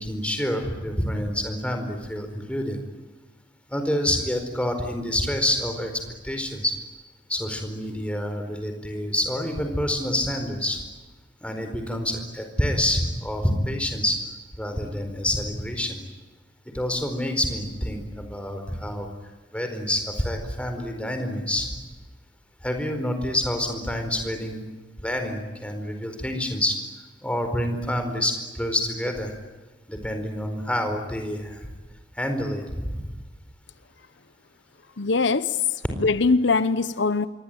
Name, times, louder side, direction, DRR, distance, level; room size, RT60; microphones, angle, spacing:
voice 1, 0.0-2.8 3.7-5.9 6.2-6.7 7.3-10.8 11.4-14.2 14.6-16.0 16.7-19.1 19.5-21.7 22.6-24.6 25.0-26.8 27.2-29.3 29.9-31.6 32.2-33.0, left 1 dB, 5° left, 4.5 m, -27 dB
voice 2, 35.0-37.3, left 4 dB, 75° left, 0.9 m, -22 dB
27.5 x 23.0 x 9.3 m
head